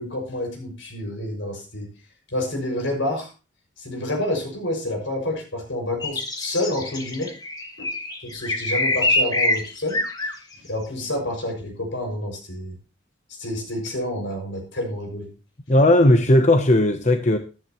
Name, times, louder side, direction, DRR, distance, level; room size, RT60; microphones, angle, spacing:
voice 1, 0.0-1.9 2.3-3.3 3.8-7.3 7.8-7.9 8.2-10.0 10.6-12.8 13.4-15.3, left 1 dB, 80° left, 6.6 m, -28 dB
sound 1, 6.0-10.3, left 2 dB, 20° left, 1.7 m, -25 dB
voice 2, 15.7-17.4, left 1 dB, 40° left, 0.9 m, -16 dB
14.5 x 11.0 x 3.1 m
head